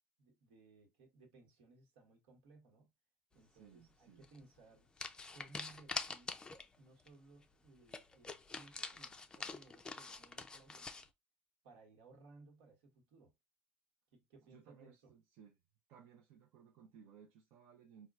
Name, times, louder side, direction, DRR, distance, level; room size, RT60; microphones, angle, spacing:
voice 1, 0.2-2.9 3.3-4.9 5.3-6.4 6.8-10.9 11.6-13.3 14.1-15.1, right 3 dB, 85° right, 1.2 m, -62 dB
voice 2, 3.3-4.2 14.5-15.5 15.9-18.1, right 7 dB, 70° right, 0.6 m, -61 dB
sound 1, 4.2-4.4 5.0-6.8 7.1-7.2 7.4-7.5 7.9-11.1, left 4 dB, 15° left, 0.4 m, -45 dB
4.2 x 2.2 x 2.4 m
cardioid pair, 120°, 5 cm